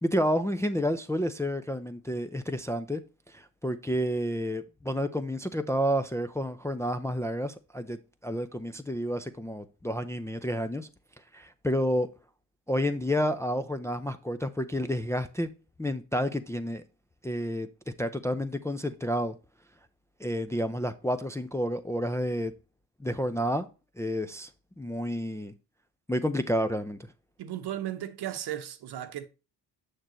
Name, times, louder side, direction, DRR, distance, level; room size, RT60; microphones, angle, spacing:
voice 1, 0.0-3.0 3.3-10.9 11.3-12.1 12.7-15.5 15.8-16.8 17.2-17.7 18.0-19.3 20.2-22.5 23.0-23.7 24.0-24.5 24.8-25.5 26.1-27.0, equal, 5° left, 0.5 m, -30 dB
voice 2, 27.4-29.3, right 11 dB, 60° right, 1.0 m, -35 dB
6.6 x 6.2 x 3.0 m
supercardioid pair, 60°, 45 cm